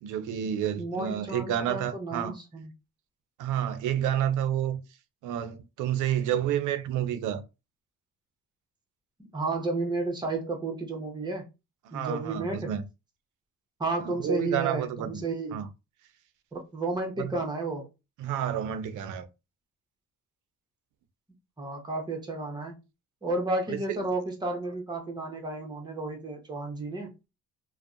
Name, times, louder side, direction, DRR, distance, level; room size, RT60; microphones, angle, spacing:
voice 1, 0.0-2.4 3.4-4.8 5.2-7.4 11.9-12.8 14.1-15.2 15.5-15.7 17.2-17.3 18.2-19.3 23.9-24.0, right 10 dB, 85° right, 0.5 m, -29 dB
voice 2, 0.8-2.7 9.2-11.4 11.9-12.7 13.8-15.6 16.5-17.9 21.6-22.8 23.2-27.1, right 2 dB, 15° right, 0.8 m, -32 dB
2.6 x 2.1 x 2.4 m
cardioid pair, 90°, 30 cm